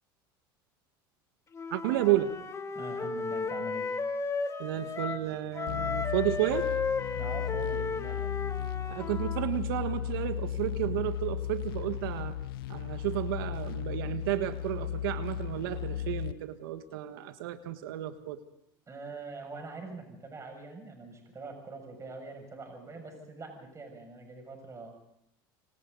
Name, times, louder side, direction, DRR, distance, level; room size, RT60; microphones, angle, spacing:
Wind instrument woodwind instrument, 1.5-5.3 5.5-9.5, left 4 dB, 25° left, 2.7 m, -34 dB
voice 1, 1.7-2.4 4.6-6.7 8.9-12.3 12.7-18.4, right 14 dB, 80° right, 9 dB, 1.6 m, -32 dB
voice 2, 2.7-3.9 7.2-8.2 18.9-24.9, right 3 dB, 25° right, 3 dB, 6.9 m, -43 dB
sound 1, 5.7-16.3, left 11 dB, 85° left, 0.7 m, -35 dB
26.5 x 26.0 x 4.0 m, 0.76 s
supercardioid pair, 95°, 12 cm